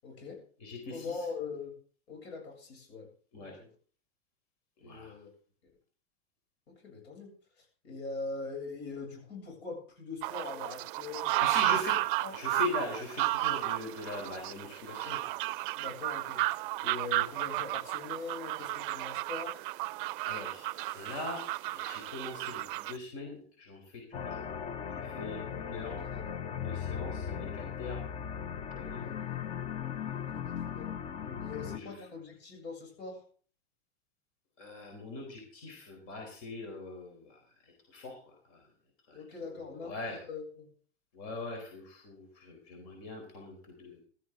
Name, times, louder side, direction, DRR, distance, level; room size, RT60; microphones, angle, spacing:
voice 1, 0.0-0.4 0.9-1.7 2.1-3.1 3.3-3.7 4.8-5.3 6.7-7.3 7.6-11.8 12.2-12.4 15.7-19.6 25.9-26.5 29.0-29.1 30.1-30.9 31.4-33.2 39.1-40.7, left 4 dB, 80° left, 1 dB, 7.9 m, -42 dB
voice 2, 0.6-1.2 3.3-3.5 4.8-5.1 11.4-11.9 12.3-15.2 20.2-21.4 21.7-24.5 24.9-26.0 26.5-28.0 28.7-29.1 31.3-32.0 34.6-37.4 37.9-38.2 38.5-38.6 39.1-40.2 41.1-44.0, left 3 dB, 45° left, 2 dB, 4.2 m, -42 dB
sound 1, 10.2-23.0, right 19 dB, 55° right, 0.5 m, -33 dB
sound 2, 24.1-31.8, left 8 dB, 20° left, 0.6 m, -38 dB
16.0 x 13.0 x 3.9 m, 0.44 s
supercardioid pair, 155°, 32 cm